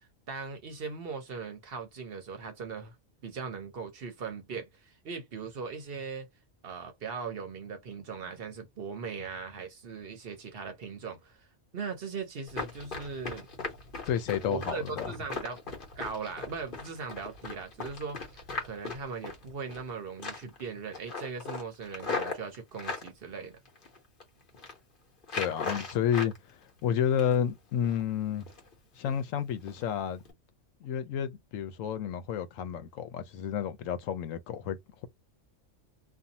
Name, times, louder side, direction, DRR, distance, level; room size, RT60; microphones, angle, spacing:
voice 1, 0.3-3.0 3.2-6.3 6.6-11.4 11.7-13.5 14.4-15.6 16.0-18.2 18.6-23.6, right 5 dB, 55° right, 0.8 m, -39 dB
Run, 12.5-19.9 20.2-20.6 20.9-23.1 23.6-24.2 24.5-24.8 25.2-26.4 26.7-27.5 27.8-28.0 28.4-28.7 29.1-29.2 29.7-29.8 30.2-30.3, left 3 dB, 45° left, 1.1 m, -38 dB
voice 2, 14.1-15.1 25.3-28.4 29.0-30.2 30.8-35.1, left 9 dB, 85° left, 1.0 m, -31 dB
2.6 x 2.3 x 2.6 m
omnidirectional pair, 1.3 m